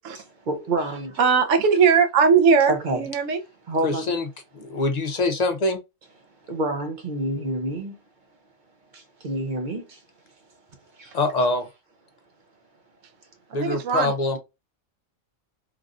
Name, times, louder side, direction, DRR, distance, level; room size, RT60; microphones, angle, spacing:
voice 1, 0.1-1.2 2.7-3.1 3.7-4.1 6.4-8.0 8.9-10.0 10.9-11.5, right 2 dB, 50° right, 0.7 m, -29 dB
voice 2, 1.2-3.4 13.5-14.1, right 6 dB, 80° right, 1.0 m, -19 dB
voice 3, 3.8-4.2 4.5-5.8 11.1-11.7 13.5-14.4, left 2 dB, 50° left, 0.5 m, -24 dB
3.3 x 2.5 x 2.3 m
omnidirectional pair, 1.3 m